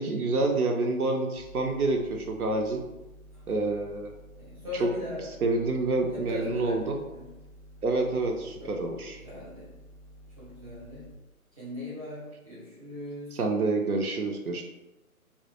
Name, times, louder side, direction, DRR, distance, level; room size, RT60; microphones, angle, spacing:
voice 1, 0.0-2.8 3.5-4.1 4.8-4.9 5.4-7.0 7.8-9.2 13.4-14.6, right 3 dB, 80° right, 3 dB, 0.5 m, -27 dB
sound 1, 1.4-11.2, equal, 50° left, 0.4 m, -51 dB
voice 2, 4.4-5.3 6.1-7.3 8.6-8.8 9.2-9.7 10.4-11.2 11.5-13.4, left 2 dB, 25° right, -9 dB, 0.6 m, -39 dB
2.1 x 2.0 x 2.9 m, 1.0 s
figure-of-eight pair, 155°, 44 cm